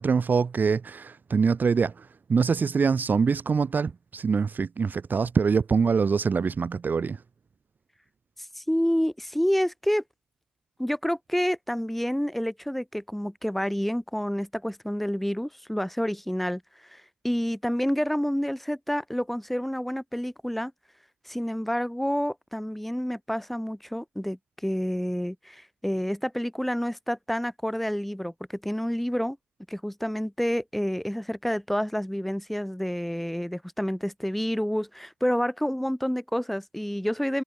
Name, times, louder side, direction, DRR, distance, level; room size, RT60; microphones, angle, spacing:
voice 1, 0.0-7.2, right 5 dB, 40° right, 1.3 m, -24 dB
voice 2, 8.6-10.0 10.8-16.6 16.9-20.7 21.3-28.3 28.6-29.4 29.7-37.4, equal, 5° left, 2.2 m, -28 dB
hypercardioid pair, 45°, 5 cm